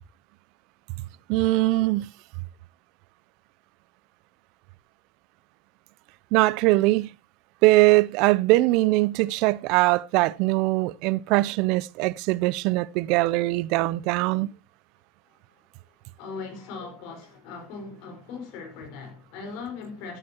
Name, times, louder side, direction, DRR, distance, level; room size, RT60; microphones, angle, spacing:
voice 1, 1.3-2.1 6.3-7.1 7.6-14.5, right 20 dB, 65° right, 0.5 m, -21 dB
voice 2, 16.2-20.2, left 4 dB, 65° left, 4.9 m, -39 dB
15.5 x 9.3 x 2.9 m
supercardioid pair, 95°, 0 cm